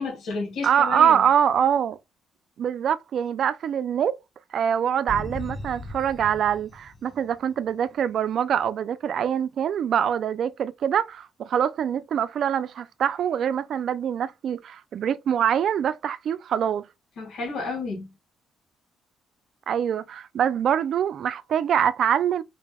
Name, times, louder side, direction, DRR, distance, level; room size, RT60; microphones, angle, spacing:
voice 1, 0.0-1.2 17.2-18.1, left 4 dB, 75° left, 2.2 m, -31 dB
voice 2, 0.6-2.0 2.6-4.2 4.5-16.9 19.7-22.4, right 8 dB, 65° right, 0.4 m, -24 dB
sound 1, 5.1-7.8, left 1 dB, 15° left, 0.9 m, -38 dB
4.0 x 3.3 x 2.2 m
cardioid pair, 90°, 0 cm